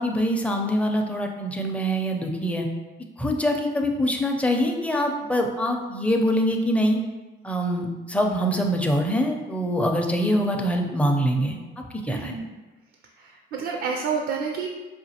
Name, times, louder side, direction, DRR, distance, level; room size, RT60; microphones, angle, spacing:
voice 1, 0.0-2.7 3.2-7.0 7.4-12.4, equal, 5° left, 2 dB, 0.5 m, -24 dB
voice 2, 12.1-12.5 13.2-14.7, right 5 dB, 80° right, 2 dB, 0.5 m, -29 dB
4.9 x 2.5 x 2.8 m, 1.2 s
cardioid pair, 90°, 20 cm